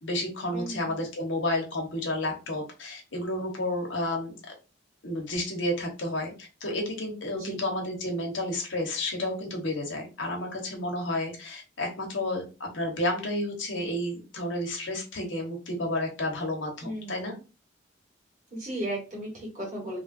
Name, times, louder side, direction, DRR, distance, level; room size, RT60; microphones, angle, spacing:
voice 1, 0.0-4.4 5.0-6.3 6.6-17.3, left 1 dB, 90° left, 1 dB, 1.0 m, -31 dB
voice 2, 0.5-1.0 7.4-7.6 16.8-17.4 18.5-20.0, right 1 dB, 40° right, -4 dB, 1.6 m, -36 dB
3.2 x 2.4 x 2.5 m, 0.31 s
head